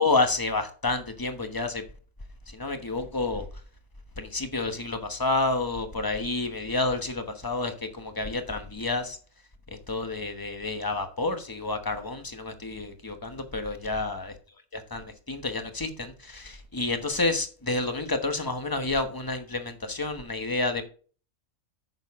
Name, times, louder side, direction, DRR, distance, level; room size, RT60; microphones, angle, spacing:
voice 1, 0.0-1.8 2.5-3.4 4.2-9.2 9.9-14.3 14.7-20.8, left 3 dB, 20° left, 1.0 m, -29 dB
9.2 x 6.5 x 3.6 m
omnidirectional pair, 1.3 m